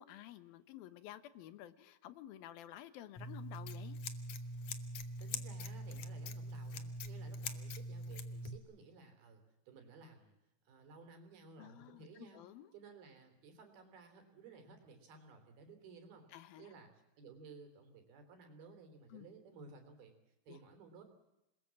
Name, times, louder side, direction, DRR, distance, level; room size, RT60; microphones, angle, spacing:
voice 1, 0.0-4.0 11.6-12.7 16.3-16.7 19.1-19.3 20.5-20.6, left 12 dB, 80° left, 13 dB, 2.9 m, -52 dB
Scissors, 3.2-8.6, left 1 dB, 60° left, 1.9 m, -43 dB
voice 2, 5.2-10.4 10.7-12.5 12.7-16.3 16.6-20.1 20.5-21.0, right 4 dB, 85° right, 6 dB, 5.2 m, -57 dB
27.0 x 20.5 x 7.6 m, 0.92 s
omnidirectional pair, 4.2 m